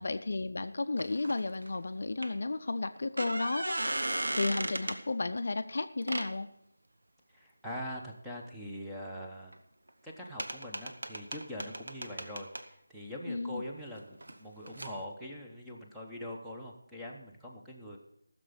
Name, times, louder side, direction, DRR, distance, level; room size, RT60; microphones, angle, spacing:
voice 1, 0.0-3.8 4.4-6.5 13.3-13.6, left 3 dB, 50° left, 9 dB, 0.6 m, -33 dB
sound 1, 1.0-1.8 2.2-2.3 3.0-5.0 6.0-6.3 9.5-9.6 9.9-10.0 10.4-12.6 14.2-14.4 14.7-14.9, right 1 dB, 65° right, 1.2 m, -36 dB
voice 2, 7.3-9.6 10.0-18.0, left 1 dB, ahead, -4 dB, 1.1 m, -43 dB
14.5 x 6.9 x 6.9 m, 0.77 s
figure-of-eight pair, 165°, 0 cm